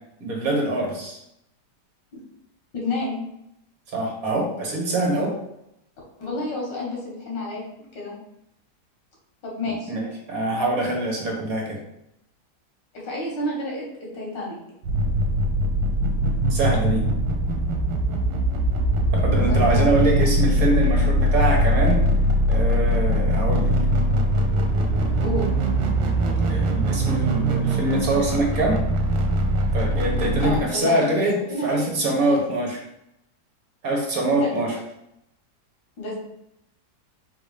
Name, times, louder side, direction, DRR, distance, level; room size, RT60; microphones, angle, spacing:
voice 1, 0.2-1.2 3.9-5.4 9.9-11.8 16.5-17.1 19.1-22.1 22.5-23.7 26.3-28.8 29.7-32.8 33.8-34.7, right 2 dB, 60° right, -1 dB, 1.4 m, -24 dB
voice 2, 2.7-3.2 6.2-7.6 7.9-8.1 9.4-9.9 12.9-14.6 19.5-19.9 25.2-25.4 30.4-31.2 31.5-32.4 34.3-34.5 36.0-36.1, left 1 dB, 85° left, -3 dB, 2.1 m, -30 dB
sound 1, 14.8-30.6, right 1 dB, 75° right, 1.4 m, -21 dB
4.1 x 2.7 x 4.8 m, 0.81 s
omnidirectional pair, 1.9 m